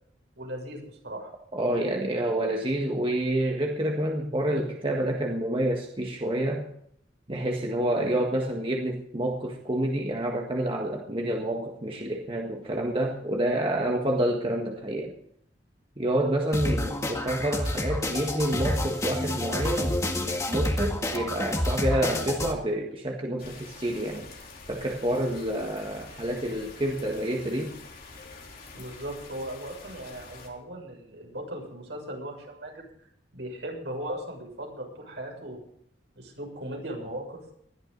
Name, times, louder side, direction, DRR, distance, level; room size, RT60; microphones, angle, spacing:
voice 1, 0.4-1.3 28.7-32.9 33.3-35.6 36.1-37.4, right 1 dB, 75° right, 1 dB, 6.7 m, -38 dB
voice 2, 1.5-6.7 7.3-15.1 16.0-24.3 24.7-27.8, right 1 dB, 30° right, 1 dB, 1.6 m, -28 dB
sound 1, 16.5-22.5, left 1 dB, 15° left, 1.9 m, -29 dB
sound 2, 23.4-30.5, left 3 dB, 55° left, 3.7 m, -46 dB
20.5 x 13.0 x 4.0 m, 0.70 s
head